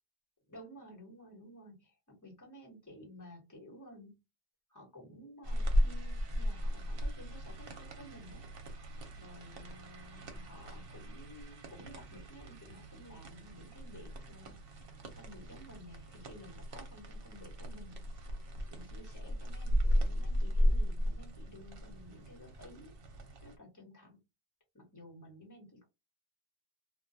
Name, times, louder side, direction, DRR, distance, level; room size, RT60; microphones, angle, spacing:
voice 1, 0.5-4.2 4.7-8.8 9.2-18.0 18.7-22.9 23.4-24.2 24.7-25.8, equal, 15° left, 1.0 m, -54 dB
sound 1, 5.4-23.6, equal, 60° right, 0.8 m, -36 dB
2.2 x 2.2 x 2.6 m
omnidirectional pair, 1.1 m